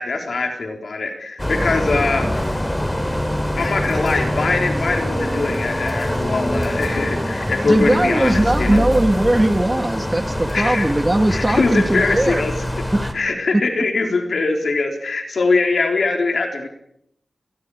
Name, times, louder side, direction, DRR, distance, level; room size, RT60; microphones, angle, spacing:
voice 1, 0.0-2.6 3.6-8.8 10.5-10.9 11.3-12.7 13.1-16.7, left 3 dB, 85° left, 3 dB, 3.9 m, -22 dB
sound 1, 1.4-13.1, equal, 10° left, 3.6 m, -24 dB
voice 2, 7.7-12.5 12.9-13.1, right 1 dB, 25° right, 7 dB, 2.4 m, -19 dB
29.5 x 21.5 x 4.9 m, 0.74 s
cardioid pair, 50°, 0 cm